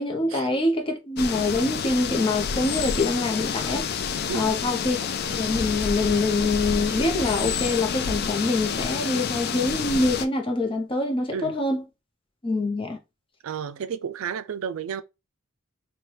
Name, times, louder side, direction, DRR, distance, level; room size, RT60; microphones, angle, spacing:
voice 1, 0.0-3.9 4.3-5.0 5.3-11.8 12.4-13.0, left 2 dB, 25° left, 0.7 m, -25 dB
sound 1, 1.2-10.3, left 6 dB, 50° left, 0.4 m, -28 dB
voice 2, 13.4-15.0, right 7 dB, 80° right, 0.4 m, -32 dB
3.1 x 2.3 x 4.3 m
head